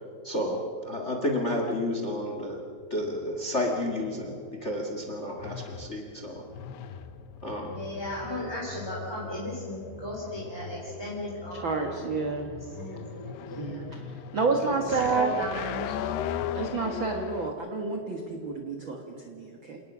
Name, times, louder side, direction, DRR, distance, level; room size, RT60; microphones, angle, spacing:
voice 1, 0.2-2.6 2.9-4.3 4.6-6.4 7.4-7.8, left 1 dB, 55° left, 2 dB, 0.7 m, -31 dB
sound 1, 2.5-17.5, left 9 dB, 80° left, 2.8 m, -39 dB
voice 2, 7.7-12.1 12.7-14.0 14.6-16.3, left 1 dB, 5° left, -5 dB, 2.9 m, -36 dB
voice 3, 11.5-12.5 13.6-14.1 14.3-15.3 16.5-19.8, right 4 dB, 70° right, 3 dB, 1.1 m, -29 dB
28.0 x 18.5 x 6.2 m, 2.4 s
omnidirectional pair, 4.8 m